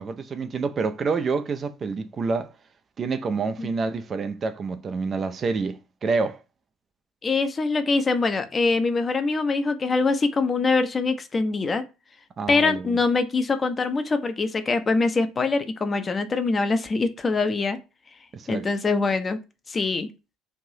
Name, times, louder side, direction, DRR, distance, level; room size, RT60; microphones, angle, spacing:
voice 1, 0.0-2.5 3.0-6.4 12.4-13.0 18.3-18.7, right 4 dB, 40° right, 0.3 m, -28 dB
voice 2, 7.2-11.8 12.5-17.8 18.5-19.4 19.7-20.1, left 3 dB, 30° left, 0.5 m, -23 dB
3.2 x 2.6 x 2.7 m
figure-of-eight pair, 60°, 0 cm